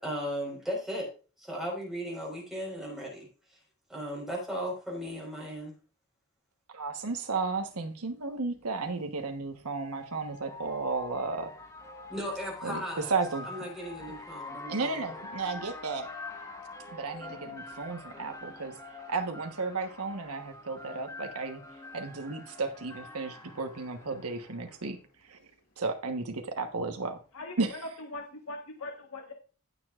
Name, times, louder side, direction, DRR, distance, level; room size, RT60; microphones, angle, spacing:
voice 1, 0.0-1.1 1.4-3.6 3.9-5.8 12.1-13.1 13.4-15.1, equal, ahead, -3 dB, 4.4 m, -36 dB
voice 2, 6.7-11.5 12.6-12.8 13.1-13.5 14.7-16.1 16.9-18.8 19.1-21.6 21.9-25.0 25.2-25.4 25.8-27.2 27.6-27.7, right 3 dB, 85° right, 5 dB, 1.2 m, -33 dB
sound 1, 7.8-7.9 9.3-24.9, left 3 dB, 15° left, 1.3 m, -45 dB
voice 3, 27.3-29.3, left 2 dB, 75° left, 2 dB, 1.4 m, -41 dB
16.0 x 7.0 x 2.5 m, 0.36 s
head